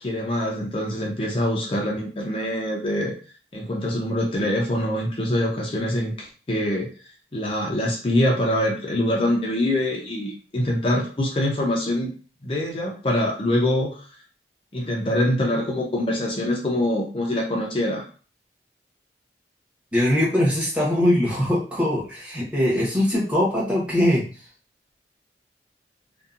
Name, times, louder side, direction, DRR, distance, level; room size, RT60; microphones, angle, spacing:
voice 1, 0.0-3.1 3.5-6.9 7.3-12.1 12.4-14.1 14.7-18.1, left 1 dB, 30° left, -1 dB, 0.5 m, -24 dB
voice 2, 19.9-24.3, left 1 dB, 5° right, -7 dB, 0.9 m, -21 dB
2.7 x 2.2 x 2.4 m, 0.38 s
head